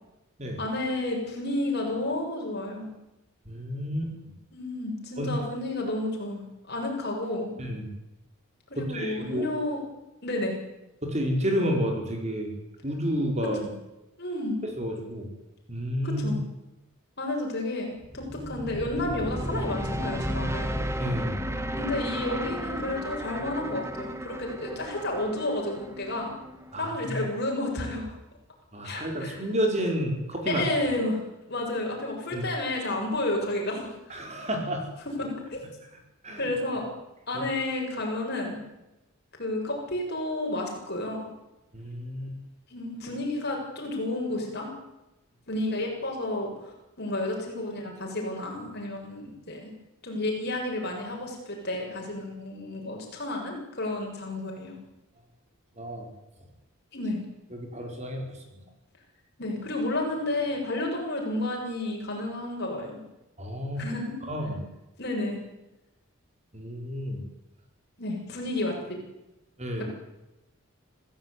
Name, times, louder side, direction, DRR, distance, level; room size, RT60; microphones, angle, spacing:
voice 1, 0.6-2.9 4.5-7.5 8.7-9.8 10.2-10.5 14.2-14.6 16.0-16.4 17.2-20.8 21.7-26.3 26.7-28.1 28.8-29.4 30.5-33.9 35.2-35.6 36.4-36.9 37.3-38.6 39.4-41.3 42.7-44.7 45.5-49.7 50.0-54.8 56.9-57.2 59.4-63.0 63.8-64.1 65.0-65.4 68.0-68.8 69.8-69.9, left 2 dB, 50° left, 1 dB, 7.5 m, -31 dB
voice 2, 3.4-4.1 5.2-5.3 7.6-7.9 8.7-9.5 11.0-12.5 12.8-13.6 14.6-15.3 15.7-16.4 21.0-21.4 26.7-27.3 28.7-30.7 32.3-32.4 34.1-34.9 36.2-36.5 37.3-37.4 41.7-42.3 55.8-56.1 57.5-58.6 63.4-63.9 64.2-64.7 66.5-67.2 69.6-69.9, equal, 30° right, 2 dB, 5.0 m, -30 dB
sound 1, 18.0-27.2, equal, 10° right, 1.5 m, -34 dB
26.0 x 16.0 x 9.7 m, 0.96 s
head